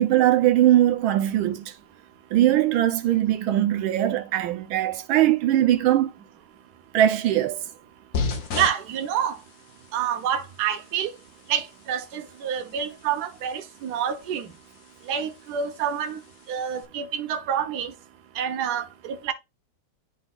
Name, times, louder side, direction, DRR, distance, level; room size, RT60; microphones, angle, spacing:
voice 1, 0.0-1.7 2.3-6.1 6.9-7.6, right 12 dB, 80° right, 1.5 m, -20 dB
sound 1, 8.1-16.8, left 5 dB, 55° left, 1.4 m, -38 dB
voice 2, 8.5-9.4 9.9-11.1 11.5-14.5 15.1-16.2 16.5-17.9 18.3-19.3, right 9 dB, 60° right, 1.3 m, -27 dB
11.0 x 4.0 x 2.4 m
omnidirectional pair, 2.2 m